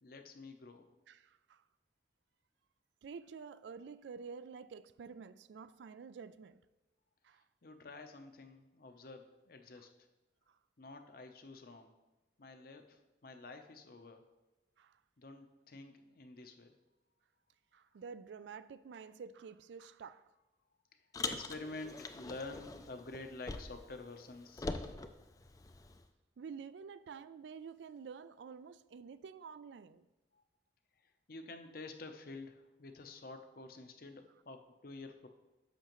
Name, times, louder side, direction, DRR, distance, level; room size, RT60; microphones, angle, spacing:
voice 1, 0.0-1.0 7.6-9.9 10.8-11.9 12.4-14.2 15.2-16.7 21.2-24.7 31.3-35.3, left 3 dB, 55° left, 0.7 m, -49 dB
voice 2, 1.1-1.6 3.0-6.6 7.2-7.4 9.8-9.9 10.5-10.6 14.8-15.0 17.7-20.2 26.4-30.1, right 6 dB, 75° right, 0.3 m, -49 dB
Car, 21.1-24.0 24.2-26.0, left 3 dB, 20° left, 0.3 m, -43 dB
10.0 x 6.8 x 3.0 m
head